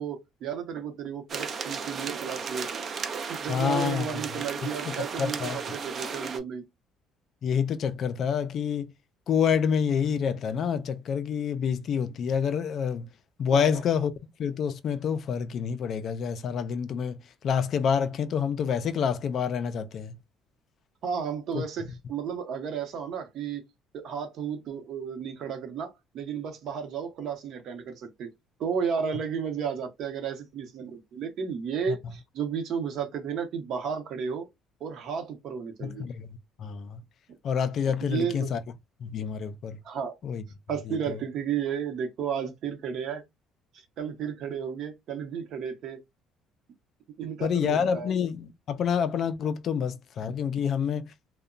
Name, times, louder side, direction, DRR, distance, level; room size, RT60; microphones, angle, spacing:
voice 1, 0.0-3.0 3.3-6.6 13.5-13.8 21.0-23.6 23.9-28.3 28.6-34.5 34.8-36.0 38.0-38.5 39.8-40.2 40.7-43.2 43.7-46.0 47.2-48.1, right 7 dB, 55° right, 0.8 m, -33 dB
sound 1, 1.3-6.4, right 5 dB, 35° right, 0.4 m, -35 dB
voice 2, 3.5-4.1 4.9-5.6 7.4-8.9 9.3-13.1 13.4-14.1 14.4-17.2 17.4-20.2 21.5-21.6 35.8-37.0 37.4-38.6 39.0-39.8 40.2-40.4 40.9-41.2 47.4-51.1, left 7 dB, 45° left, 0.3 m, -28 dB
2.8 x 2.1 x 2.4 m
cardioid pair, 140°, 0 cm